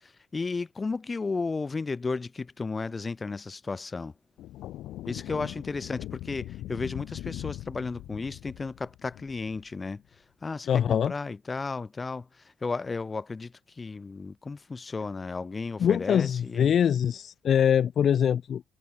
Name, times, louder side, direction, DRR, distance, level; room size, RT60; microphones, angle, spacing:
voice 1, 0.0-4.1 5.1-10.0 10.4-12.3 12.6-16.7, left 4 dB, 30° left, 1.6 m, -34 dB
sound 1, 4.4-10.0, left 14 dB, 85° left, 1.3 m, -41 dB
voice 2, 10.7-11.1 15.8-18.6, left 8 dB, 60° left, 0.5 m, -23 dB
cardioid pair, 90°, 0 cm